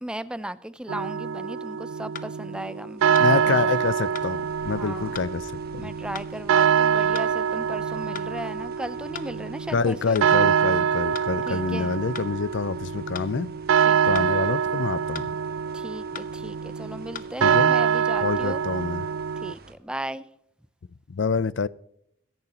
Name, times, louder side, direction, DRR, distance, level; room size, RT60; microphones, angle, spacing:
voice 1, 0.0-3.7 4.8-5.2 5.8-10.2 11.5-11.9 13.9-14.2 15.7-18.6 19.4-20.3, right 1 dB, 5° right, 0.4 m, -36 dB
sound 1, 0.9-19.5, right 7 dB, 90° right, 0.4 m, -25 dB
sound 2, 2.1-2.3 3.1-3.3 4.1-4.3 5.1-5.3 6.1-6.3 7.1-7.3 8.1-8.3 9.1-9.3 10.1-10.3 11.1-11.3 12.1-12.3 13.1-13.3 14.1-14.3 15.1-15.3 16.1-16.3 17.1-17.2, left 7 dB, 40° left, 0.8 m, -38 dB
sound 3, 3.0-19.7, right 2 dB, 50° right, 1.5 m, -50 dB
voice 2, 3.2-5.9 9.7-13.5 14.0-15.3 17.4-17.8 18.2-19.1 21.1-21.7, left 5 dB, 75° left, 0.5 m, -27 dB
22.0 x 11.0 x 2.9 m
head